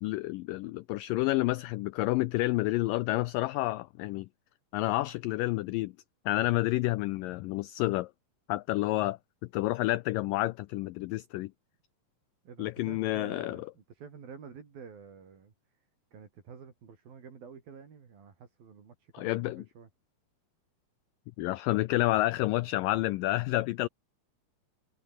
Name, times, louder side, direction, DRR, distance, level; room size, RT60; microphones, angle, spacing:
voice 1, 0.0-4.3 4.7-5.9 6.3-8.1 8.5-9.2 9.5-11.5 12.6-13.7 19.1-19.7 21.4-23.9, left 18 dB, 85° left, 1.9 m, -29 dB
voice 2, 12.5-15.5 16.1-19.9, right 6 dB, 65° right, 5.6 m, -49 dB
omnidirectional pair, 4.5 m